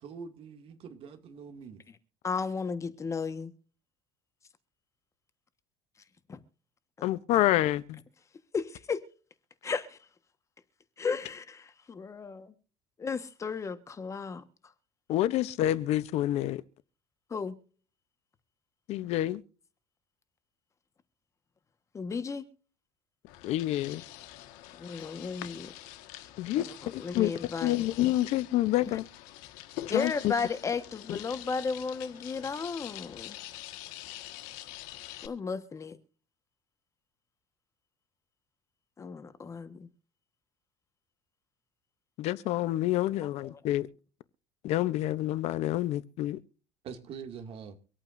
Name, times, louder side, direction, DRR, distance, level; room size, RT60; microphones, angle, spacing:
voice 1, 0.0-1.8 46.8-47.8, right 6 dB, 50° right, 2.4 m, -44 dB
voice 2, 2.2-3.5 6.3-6.4 8.5-9.0 9.6-10.0 11.0-12.5 13.0-14.4 17.3-17.6 21.9-22.4 24.8-25.7 26.5-26.6 27.0-27.7 29.9-33.4 35.2-36.0 39.0-39.9 43.4-43.5, left 5 dB, 25° left, 1.4 m, -34 dB
voice 3, 7.0-8.0 15.1-16.6 18.9-19.4 23.4-24.0 26.4-27.3 27.6-29.0 29.9-30.3 31.1-31.2 42.2-43.9 44.6-46.4, left 14 dB, 60° left, 0.8 m, -28 dB
sound 1, 23.3-35.3, left 15 dB, 85° left, 1.6 m, -45 dB
25.0 x 8.8 x 2.6 m
cardioid pair, 130°, 12 cm